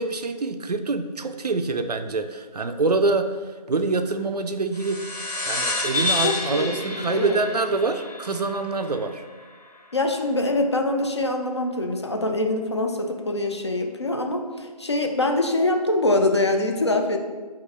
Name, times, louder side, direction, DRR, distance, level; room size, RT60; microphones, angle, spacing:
voice 1, 0.0-3.3 3.7-5.0 5.5-9.2, right 3 dB, 70° right, 8 dB, 0.4 m, -25 dB
sound 1, 4.7-9.6, left 2 dB, 70° left, 1.1 m, -29 dB
voice 2, 6.2-7.4 9.9-17.2, left 2 dB, 40° left, 4 dB, 0.4 m, -24 dB
5.2 x 2.5 x 3.4 m, 1.4 s
figure-of-eight pair, 160°, 21 cm